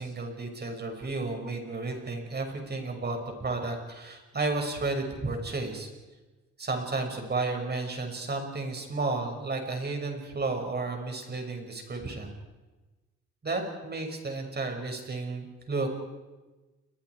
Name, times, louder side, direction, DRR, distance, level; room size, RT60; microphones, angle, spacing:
voice 1, 0.0-5.9 6.6-12.3 13.4-16.0, right 3 dB, 35° right, 3 dB, 6.1 m, -32 dB
30.0 x 22.5 x 4.8 m, 1.2 s
cardioid pair, 90°, 30 cm